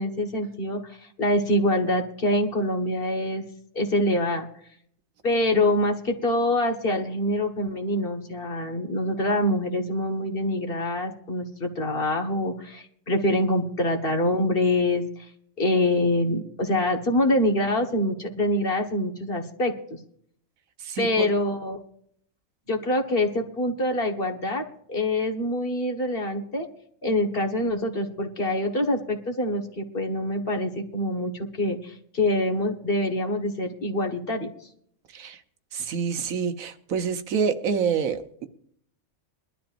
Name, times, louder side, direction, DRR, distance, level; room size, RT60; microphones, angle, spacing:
voice 1, 0.0-3.4 3.7-4.5 5.2-15.0 15.6-20.0 21.0-21.8 22.7-24.6 24.9-26.7 27.0-34.5, left 1 dB, 45° left, 1.6 m, -25 dB
voice 2, 20.8-21.3 35.1-35.4 35.7-38.5, right 6 dB, 85° right, 1.3 m, -27 dB
22.5 x 12.0 x 2.6 m
omnidirectional pair, 1.4 m